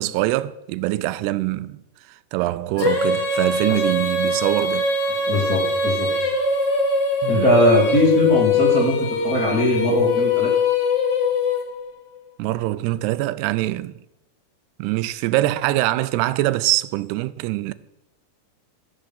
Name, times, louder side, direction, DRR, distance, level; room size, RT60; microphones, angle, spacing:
voice 1, 0.0-1.8 2.3-4.9 7.2-7.5 12.4-14.0 14.8-17.7, right 16 dB, 90° right, 2.6 m, -23 dB
Female singing, 2.8-11.9, left 3 dB, 75° left, 1.0 m, -22 dB
voice 2, 5.3-6.1 7.3-9.0 9.2-10.5, left 1 dB, 30° left, 2.0 m, -19 dB
14.0 x 6.6 x 7.2 m
omnidirectional pair, 4.7 m